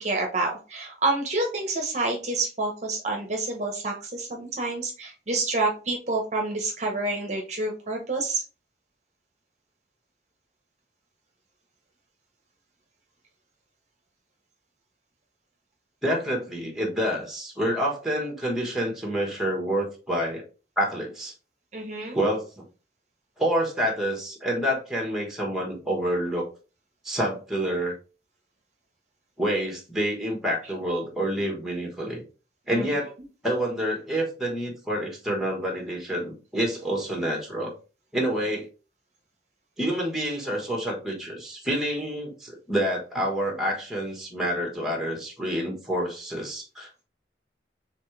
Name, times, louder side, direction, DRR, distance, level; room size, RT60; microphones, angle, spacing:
voice 1, 0.0-8.4 21.7-22.2 32.7-32.9, right 2 dB, 40° right, 2 dB, 0.8 m, -28 dB
voice 2, 16.0-20.4 20.8-21.3 22.1-22.6 23.4-26.5 27.0-27.9 29.4-32.2 32.7-33.1 33.4-37.7 38.1-38.7 39.8-46.9, equal, ahead, 0 dB, 1.3 m, -28 dB
4.2 x 3.6 x 3.2 m, 0.34 s
head